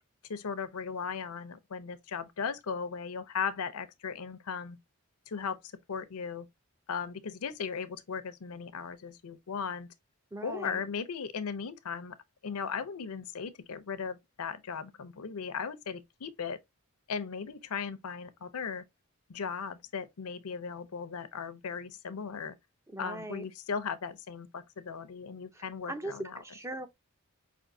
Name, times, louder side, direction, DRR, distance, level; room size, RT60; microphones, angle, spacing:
voice 1, 0.3-4.8 5.3-5.6 5.9-6.5 6.9-9.9 10.4-12.2 12.4-16.6 17.1-18.8 19.3-22.6 23.0-26.4, left 6 dB, 80° left, 0.6 m, -37 dB
voice 2, 10.3-10.8 22.9-23.4 25.5-26.9, right 2 dB, 10° right, 0.4 m, -40 dB
5.2 x 2.6 x 2.5 m
head